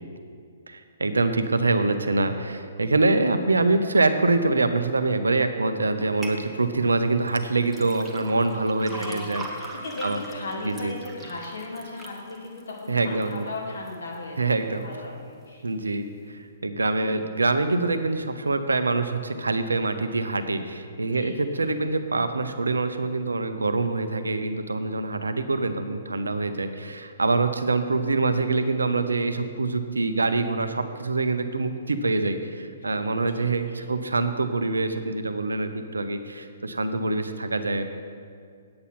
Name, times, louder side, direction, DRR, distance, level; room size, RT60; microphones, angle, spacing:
voice 1, 0.7-9.7 10.0-10.2 10.6-10.9 12.9-13.5 14.4-14.8 15.6-37.9, right 3 dB, 75° right, 8 dB, 0.7 m, -25 dB
sound 1, 6.2-6.4 7.3-13.4 13.9-14.4 14.9-15.0, right 2 dB, 5° right, 1.1 m, -41 dB
voice 2, 8.8-14.5 14.8-15.7 21.1-21.7 27.9-28.5 32.8-33.0 33.3-33.8, left 2 dB, 70° left, -3 dB, 2.6 m, -37 dB
8.7 x 8.3 x 5.7 m, 2.3 s
figure-of-eight pair, 125°, 0 cm